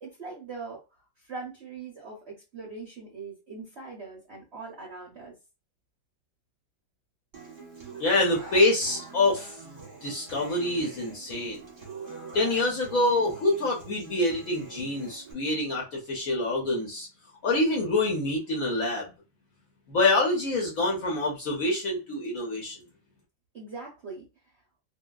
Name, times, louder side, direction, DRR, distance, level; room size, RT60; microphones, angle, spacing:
voice 1, 0.0-5.3 23.5-24.2, right 4 dB, 55° right, -3 dB, 0.7 m, -41 dB
Human voice / Acoustic guitar, 7.3-15.3, right 4 dB, 35° right, 0.9 m, -44 dB
voice 2, 8.0-11.6 12.3-17.1 17.4-19.0 19.9-22.8, left 2 dB, 60° left, -2 dB, 0.9 m, -26 dB
2.7 x 2.7 x 2.2 m, 0.29 s
omnidirectional pair, 2.1 m